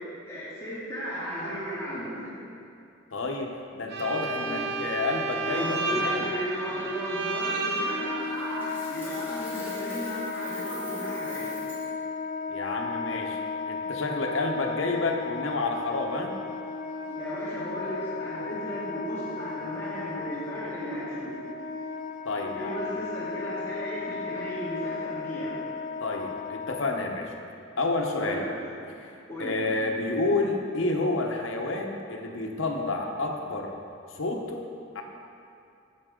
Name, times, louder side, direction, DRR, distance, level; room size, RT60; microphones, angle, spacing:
voice 1, 0.0-2.4 4.4-4.6 5.4-11.6 17.1-21.4 22.4-25.6 28.1-28.6 29.3-29.6, equal, 15° left, -10 dB, 2.2 m, -35 dB
voice 2, 3.1-6.3 12.5-13.4 13.7-16.4 22.2-22.7 26.0-27.3 27.8-28.4 28.9-29.1 29.4-33.7 34.1-34.6 34.9-35.0, left 2 dB, 75° left, 1 dB, 0.9 m, -29 dB
Bowed string instrument, 3.9-8.6, right 3 dB, 55° right, 0.7 m, -31 dB
Wind instrument woodwind instrument, 7.8-27.3, left 5 dB, 40° left, 0.4 m, -35 dB
Coin (dropping), 8.4-11.9, equal, 10° right, 1.6 m, -46 dB
9.6 x 7.7 x 3.8 m, 2.5 s
head